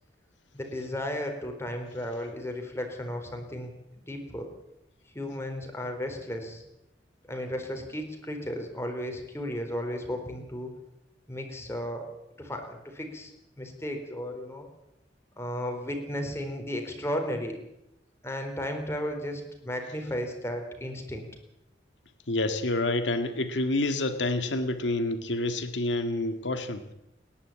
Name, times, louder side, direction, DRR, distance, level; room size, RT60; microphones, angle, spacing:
voice 1, 0.5-3.7 4.1-4.5 5.1-6.6 7.3-10.7 11.3-12.1 12.4-13.3 13.6-14.7 15.4-17.6 18.2-21.3, equal, 15° left, 4 dB, 4.2 m, -34 dB
voice 2, 22.3-26.9, left 2 dB, 90° left, 8 dB, 1.8 m, -28 dB
29.5 x 11.0 x 8.8 m, 0.86 s
head